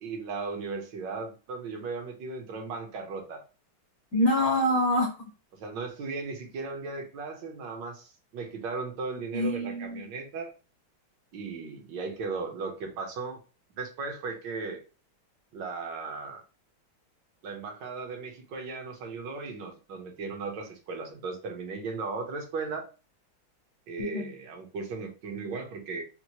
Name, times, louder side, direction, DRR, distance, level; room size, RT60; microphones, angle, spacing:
voice 1, 0.0-3.4 5.5-10.5 11.3-13.4 13.7-14.8 15.5-16.4 17.4-22.9 23.9-26.0, right 4 dB, 70° right, 3 dB, 1.4 m, -36 dB
voice 2, 4.1-5.1 9.3-10.0 24.0-24.3, left 1 dB, 60° left, 0 dB, 1.2 m, -25 dB
4.4 x 2.0 x 2.8 m, 0.33 s
omnidirectional pair, 2.1 m